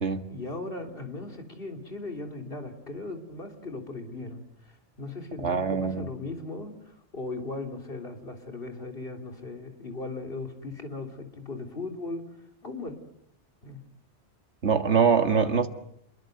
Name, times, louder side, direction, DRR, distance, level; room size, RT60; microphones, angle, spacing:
voice 1, 0.3-12.3 12.6-12.9 13.6-13.8, left 2 dB, 55° left, 4 dB, 3.6 m, -38 dB
voice 2, 5.4-6.1 14.6-15.7, right 6 dB, 75° right, 8 dB, 2.1 m, -23 dB
28.5 x 22.5 x 7.8 m, 0.76 s
omnidirectional pair, 1.2 m